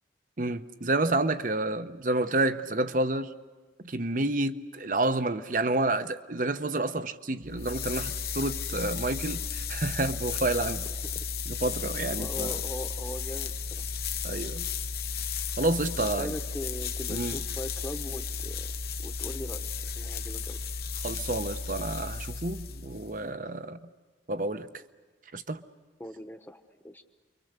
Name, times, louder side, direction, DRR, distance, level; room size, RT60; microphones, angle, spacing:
voice 1, 0.4-3.3 3.8-10.9 11.5-12.6 14.2-14.7 15.6-16.4 17.1-17.4 21.0-23.9 24.3-24.7 25.3-25.6, right 2 dB, 45° right, 0.8 m, -29 dB
sound 1, 7.4-23.2, left 5 dB, 55° left, 0.9 m, -34 dB
voice 2, 12.2-13.8 16.0-18.7 19.0-19.7 20.0-20.6 26.0-27.0, equal, 10° left, 1.1 m, -40 dB
29.0 x 24.0 x 6.7 m
head